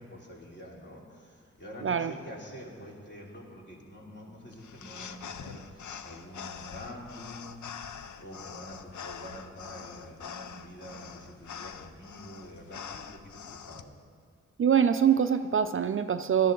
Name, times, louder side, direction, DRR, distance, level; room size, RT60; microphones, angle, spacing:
voice 1, 0.0-7.7 8.2-13.9, equal, 40° left, -3 dB, 2.8 m, -46 dB
voice 2, 1.8-2.1 14.6-16.5, right 8 dB, 45° right, 9 dB, 0.4 m, -24 dB
sound 1, 4.5-13.8, left 7 dB, 80° left, 0.6 m, -44 dB
17.5 x 12.0 x 3.8 m, 2.1 s
wide cardioid pair, 115°, 29 cm